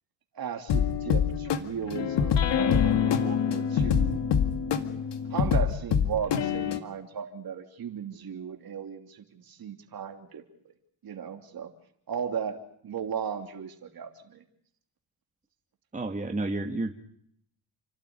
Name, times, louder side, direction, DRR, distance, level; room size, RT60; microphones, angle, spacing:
voice 1, 0.3-4.2 5.3-10.4 11.0-11.7 12.1-14.4, right 7 dB, 45° right, 5 dB, 3.1 m, -36 dB
sound 1, 0.7-6.8, left 7 dB, 60° left, 2.0 m, -25 dB
voice 2, 15.9-17.0, right 2 dB, 15° right, 4 dB, 1.7 m, -31 dB
29.0 x 12.0 x 9.7 m, 0.72 s
cardioid pair, 90°, 48 cm